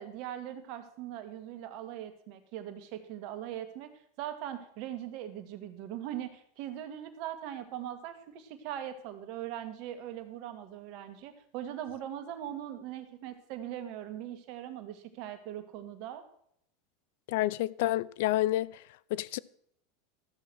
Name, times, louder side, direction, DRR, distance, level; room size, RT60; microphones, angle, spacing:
voice 1, 0.0-3.9 4.2-16.2, right 11 dB, 55° right, 1.9 m, -40 dB
voice 2, 17.3-18.7 19.1-19.4, left 16 dB, 70° left, 0.5 m, -29 dB
13.5 x 7.4 x 6.2 m
hypercardioid pair, 105°, 0 cm